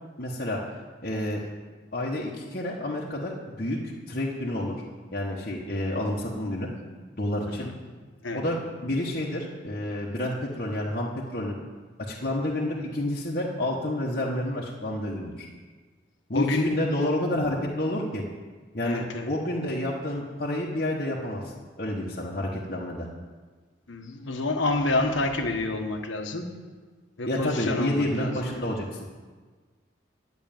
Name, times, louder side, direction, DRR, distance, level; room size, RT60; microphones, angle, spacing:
voice 1, 0.2-0.6 1.0-1.4 1.9-4.7 5.1-6.7 7.1-7.7 8.3-11.6 12.0-15.5 16.3-18.2 18.7-21.4 21.8-23.1 27.2-28.9, left 1 dB, 45° left, -4 dB, 1.2 m, -29 dB
voice 2, 16.3-16.7 18.8-19.3 23.9-26.6 27.2-28.7, left 2 dB, 80° left, 4 dB, 1.3 m, -28 dB
11.0 x 6.2 x 9.1 m, 1.4 s
head